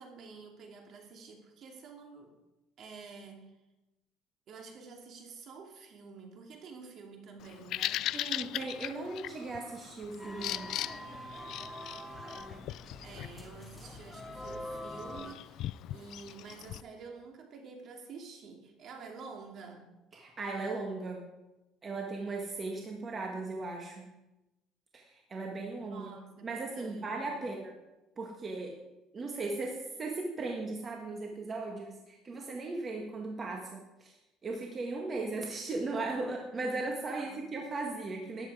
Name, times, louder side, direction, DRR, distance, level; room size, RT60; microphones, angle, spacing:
voice 1, 0.0-2.3 2.8-3.5 4.5-8.1 13.0-19.9 25.8-26.5 26.7-27.6 37.1-37.4, right 4 dB, 50° right, 2 dB, 2.6 m, -49 dB
Bird vocalization bird call bird song, 7.4-16.8, left 14 dB, 60° left, 0.3 m, -40 dB
voice 2, 8.1-10.7 20.1-21.2 21.8-24.0 24.9-27.8 28.2-28.8 29.1-38.5, right 3 dB, 30° right, 1 dB, 1.7 m, -37 dB
sound 1, 10.2-15.3, equal, ahead, 1.7 m, -44 dB
13.5 x 10.5 x 4.9 m, 1.0 s
cardioid pair, 125°, 0 cm